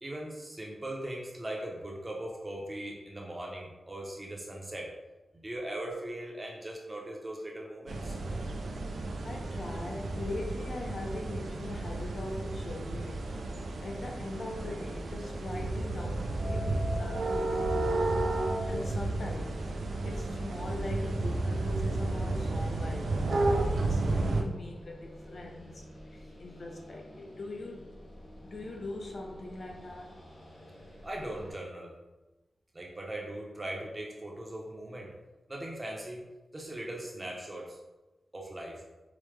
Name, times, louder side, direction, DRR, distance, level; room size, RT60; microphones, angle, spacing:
voice 1, 0.0-4.9 5.3-8.2 31.0-32.0 32.7-35.1 35.5-36.2 36.5-37.8 38.3-38.8, right 1 dB, 20° right, -1 dB, 0.6 m, -39 dB
sound 1, 7.9-24.4, right 2 dB, 85° right, 0.4 m, -32 dB
voice 2, 9.2-13.4 13.8-18.2 18.6-28.0 28.4-30.2, left 2 dB, 50° left, 1 dB, 0.4 m, -41 dB
sound 2, 16.2-31.5, equal, 80° left, 1.1 m, -50 dB
4.9 x 2.1 x 3.2 m, 1.1 s
wide cardioid pair, 165°, 0 cm